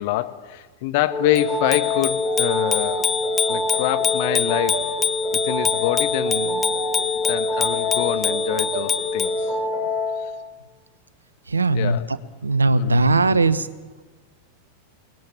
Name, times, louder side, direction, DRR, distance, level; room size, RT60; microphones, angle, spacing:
voice 1, 0.0-3.1 3.5-4.9 5.3-6.7 7.3-9.5 10.2-10.3 11.7-12.2 12.7-13.4, left 16 dB, 50° left, 8 dB, 1.7 m, -26 dB
sound 1, 1.1-10.3, left 1 dB, 10° right, 7.7 m, -25 dB
Bicycle bell, 1.4-9.4, left 7 dB, 20° left, 0.8 m, -26 dB
voice 2, 11.5-12.0 12.4-13.7, right 3 dB, 75° right, 15 dB, 1.1 m, -18 dB
29.5 x 19.5 x 7.6 m, 1.3 s
figure-of-eight pair, 90°, 0 cm